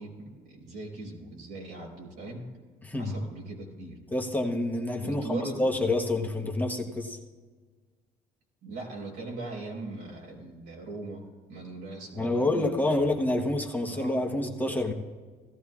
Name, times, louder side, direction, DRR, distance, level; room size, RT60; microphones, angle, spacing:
voice 1, 0.0-2.4 3.0-4.0 5.0-5.7 8.6-11.2 11.5-13.1 13.8-14.2 14.6-14.9, right 2 dB, 90° right, -2 dB, 4.2 m, -40 dB
voice 2, 2.8-3.2 4.1-7.2 12.1-14.9, left 2 dB, 10° left, 1 dB, 1.1 m, -28 dB
17.0 x 14.0 x 2.4 m, 1.5 s
cardioid pair, 110°, 17 cm